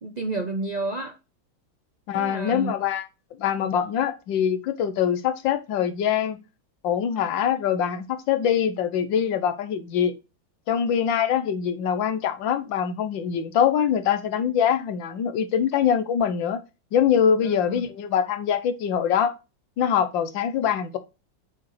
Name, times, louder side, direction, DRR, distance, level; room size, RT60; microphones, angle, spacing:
voice 1, 0.0-1.2 2.1-2.7 17.4-17.9, right 3 dB, 50° right, 0.4 m, -30 dB
voice 2, 2.1-3.1 3.4-6.4 6.8-10.1 10.7-16.6 16.9-19.3 19.8-21.0, left 8 dB, 75° left, 1.5 m, -23 dB
8.2 x 4.8 x 3.1 m
omnidirectional pair, 2.1 m